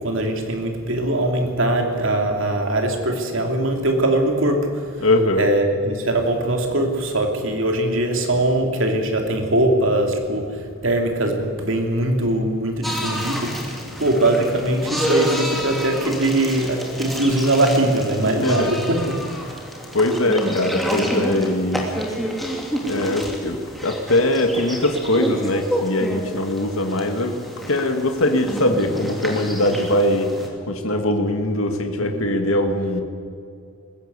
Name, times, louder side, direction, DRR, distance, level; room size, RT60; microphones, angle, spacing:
voice 1, 0.0-5.1 5.4-19.6 32.0-32.4, right 1 dB, 65° right, 3 dB, 2.9 m, -21 dB
voice 2, 5.0-5.5 18.2-18.8 19.9-22.2 22.8-27.4 27.7-30.4 30.7-33.0, left 1 dB, 80° left, 5 dB, 1.9 m, -21 dB
sound 1, 12.8-30.5, equal, ahead, 2.9 m, -29 dB
20.5 x 15.5 x 8.2 m, 2.4 s
head